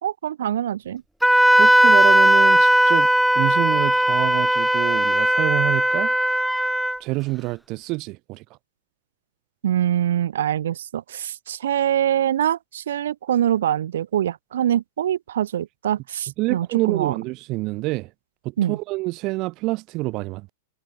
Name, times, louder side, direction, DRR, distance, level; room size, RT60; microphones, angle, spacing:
voice 1, 0.0-1.0 9.6-17.2 18.6-18.8, right 10 dB, 75° right, 1.6 m, -24 dB
Wind instrument woodwind instrument, 1.2-7.0, equal, ahead, 0.3 m, -17 dB
voice 2, 1.5-3.1 3.3-6.1 7.0-8.4 16.4-18.1 18.4-20.5, right 22 dB, 30° right, 0.9 m, -27 dB
supercardioid pair, 170°, 0 cm